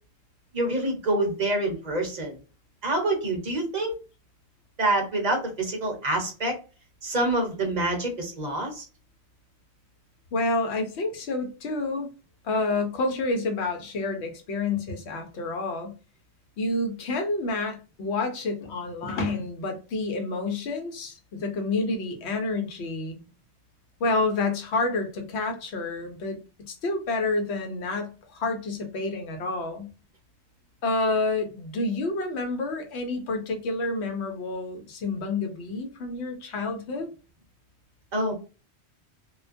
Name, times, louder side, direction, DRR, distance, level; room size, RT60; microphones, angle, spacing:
voice 1, 0.5-2.4 2.8-4.0 4.8-6.5 7.0-8.8 38.1-38.3, right 2 dB, 45° right, 0.9 m, -26 dB
voice 2, 10.3-12.1 12.4-15.9 16.6-23.2 24.0-26.4 26.7-29.9 30.8-37.1, left 3 dB, 80° left, 0.9 m, -29 dB
2.4 x 2.2 x 2.5 m
omnidirectional pair, 1.1 m